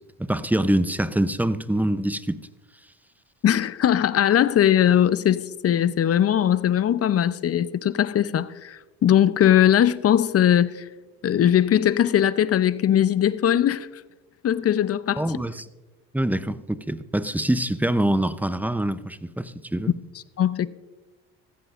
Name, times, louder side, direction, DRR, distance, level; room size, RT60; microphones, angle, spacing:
voice 1, 0.3-2.4 15.2-15.7 16.1-19.9, right 1 dB, 5° right, 0.6 m, -24 dB
voice 2, 3.4-10.8 11.2-13.9 14.4-15.3 20.4-20.7, left 10 dB, 40° left, 0.7 m, -20 dB
15.0 x 14.5 x 2.5 m
supercardioid pair, 80°, 37 cm